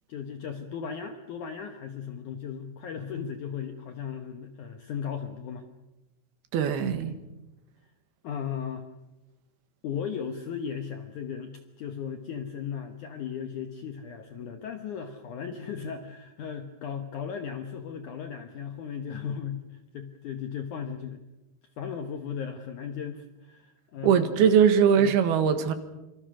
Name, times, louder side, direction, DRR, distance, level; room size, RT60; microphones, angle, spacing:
voice 1, 0.1-5.7 8.2-8.9 9.8-21.2 21.8-24.6 25.0-25.2, left 7 dB, 65° left, 7 dB, 2.2 m, -36 dB
voice 2, 6.5-7.2 24.0-25.7, right 7 dB, 70° right, 9 dB, 3.5 m, -21 dB
26.5 x 25.5 x 6.4 m, 1.0 s
omnidirectional pair, 4.8 m